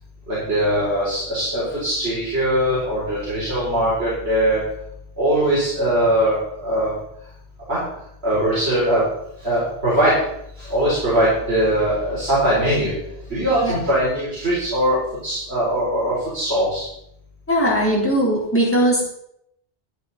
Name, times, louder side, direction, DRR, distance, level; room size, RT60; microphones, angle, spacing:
voice 1, 0.3-4.6 5.2-6.9 7.7-7.8 8.2-9.0 9.4-10.1 10.6-12.9 13.3-16.9, right 1 dB, 80° right, -8 dB, 4.5 m, -21 dB
voice 2, 17.5-19.0, right 1 dB, 10° left, -5 dB, 3.8 m, -19 dB
12.0 x 11.0 x 4.1 m, 0.75 s
omnidirectional pair, 1.1 m